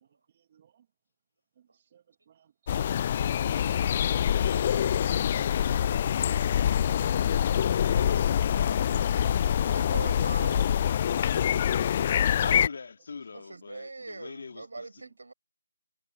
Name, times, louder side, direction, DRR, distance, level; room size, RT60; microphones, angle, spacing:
voice 1, 0.0-0.9 1.6-7.1 13.5-13.6 15.0-15.1, right 9 dB, 35° right, 1.9 m, -63 dB
sound 1, 2.7-12.7, left 9 dB, 30° left, 0.3 m, -25 dB
voice 2, 7.7-9.4 12.4-15.0, left 5 dB, 55° left, 2.5 m, -42 dB
voice 3, 9.4-10.7 11.0-11.1 13.3-15.3, right 3 dB, 70° right, 6.6 m, -41 dB
figure-of-eight pair, 155°, 0 cm